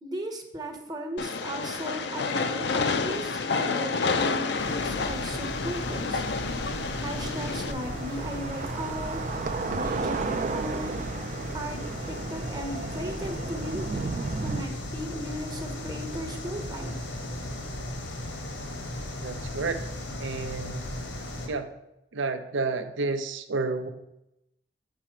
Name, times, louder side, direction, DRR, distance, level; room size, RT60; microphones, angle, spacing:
voice 1, 0.0-6.2 6.9-9.2 9.7-10.9 11.5-11.8 12.1-14.1 14.4-16.9, equal, 20° right, 4 dB, 0.8 m, -36 dB
Train, 1.2-7.7, left 4 dB, 60° left, 0.5 m, -29 dB
sound 1, 4.6-21.5, left 1 dB, 75° left, 1.3 m, -36 dB
sound 2, 4.9-14.6, right 4 dB, 40° right, 0.3 m, -35 dB
voice 2, 19.2-19.8 20.2-20.8 21.5-21.7 22.1-23.9, right 3 dB, 85° right, 9 dB, 0.7 m, -30 dB
7.1 x 5.0 x 4.4 m, 0.86 s
head